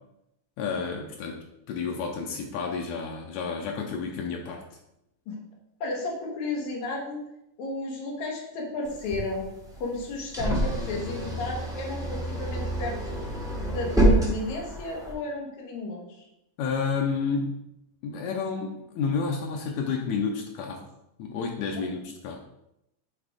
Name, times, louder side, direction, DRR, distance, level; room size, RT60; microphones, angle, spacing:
voice 1, 0.6-4.6 16.6-17.6 18.0-20.8 21.2-22.4, left 5 dB, 85° left, 1 dB, 1.6 m, -30 dB
voice 2, 5.8-7.2 7.6-9.5 9.8-13.2 13.6-16.3 21.7-21.8, left 2 dB, 65° left, 0 dB, 2.2 m, -33 dB
sound 1, 8.8-15.1, right 1 dB, 5° right, 0.6 m, -27 dB
7.0 x 3.6 x 4.9 m, 0.83 s
omnidirectional pair, 4.1 m